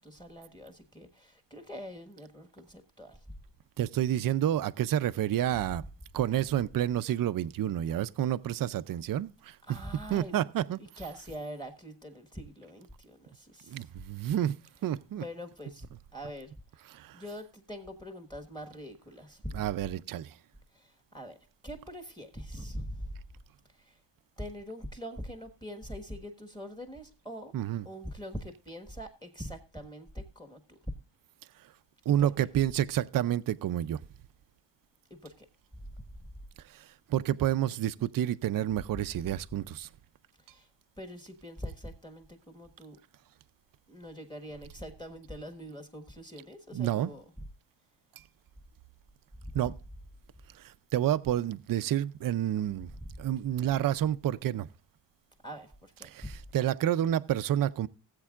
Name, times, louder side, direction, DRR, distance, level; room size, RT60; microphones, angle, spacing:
voice 1, 0.0-3.2 9.7-10.3 11.0-13.8 15.2-15.9 16.1-16.5 17.1-19.6 20.7-21.4 21.6-23.1 23.9-24.0 24.4-27.5 27.8-30.8 32.2-32.5 35.1-35.5 40.5-40.7 41.0-43.0 43.9-47.2 49.4-49.5 55.4-56.3, equal, 10° left, 1.3 m, -43 dB
voice 2, 3.8-5.8 6.1-9.8 10.1-10.8 13.7-14.5 14.8-15.2 16.9-17.2 19.5-20.3 27.5-27.9 32.1-34.0 36.7-39.9 46.7-47.1 49.5-49.7 50.6-52.9 53.2-54.7 56.0-57.9, right 11 dB, 45° right, 0.5 m, -29 dB
18.0 x 8.0 x 2.4 m
cardioid pair, 135°, 50 cm